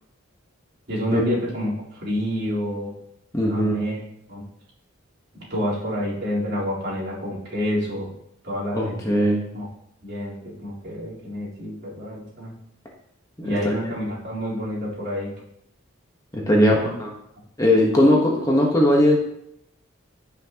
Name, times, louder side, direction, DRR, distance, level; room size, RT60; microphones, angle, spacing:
voice 1, 0.9-2.9 3.5-4.0 4.3-4.4 5.3-8.1 8.4-9.7 10.0-12.5 13.4-15.3 16.5-16.9, equal, 55° right, -7 dB, 3.9 m, -28 dB
voice 2, 3.3-3.9 8.7-9.4 13.4-13.7 16.3-17.1 17.6-19.2, left 1 dB, 15° left, -2 dB, 1.3 m, -19 dB
15.5 x 6.0 x 3.0 m, 0.77 s
head